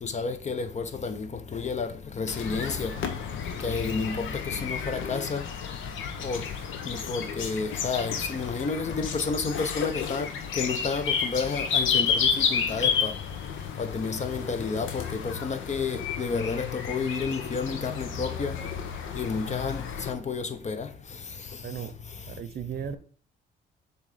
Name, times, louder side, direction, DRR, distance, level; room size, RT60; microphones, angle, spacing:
voice 1, 0.0-3.1 3.6-5.4 6.2-6.4 6.9-13.1 13.8-18.6 19.1-20.9, left 4 dB, 35° left, 0.8 m, -31 dB
sound 1, 2.3-20.1, left 6 dB, 80° left, 0.9 m, -31 dB
voice 2, 21.6-21.9 22.3-23.0, right 8 dB, 55° right, 0.7 m, -35 dB
7.1 x 2.9 x 5.0 m
cardioid pair, 90°, 20 cm